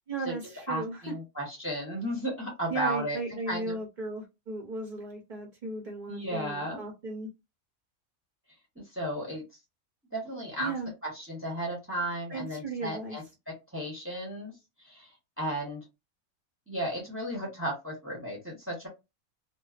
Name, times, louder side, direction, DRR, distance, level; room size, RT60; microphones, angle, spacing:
voice 1, 0.1-1.1 2.7-7.3 10.6-10.9 12.3-13.2, right 3 dB, 45° right, 0.6 m, -36 dB
voice 2, 0.7-3.2 3.5-3.8 6.1-6.8 8.8-9.4 10.1-10.7 11.0-13.2 13.7-14.5 14.8-15.1 15.4-15.8 16.7-18.9, right 1 dB, 10° right, 0.7 m, -34 dB
2.4 x 2.2 x 2.4 m
omnidirectional pair, 1.5 m